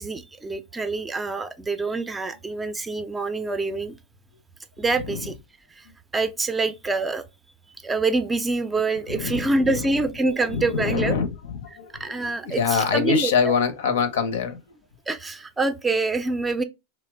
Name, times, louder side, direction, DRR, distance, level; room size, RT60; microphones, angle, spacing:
voice 1, 0.0-4.0 4.8-5.3 5.8-5.9 6.1-7.2 7.8-11.2 12.0-13.3 15.1-16.6, right 3 dB, 15° right, 0.4 m, -26 dB
voice 2, 9.1-9.9 10.4-14.8, left 6 dB, 80° left, 0.6 m, -25 dB
3.0 x 2.1 x 3.3 m
hypercardioid pair, 110°, 0 cm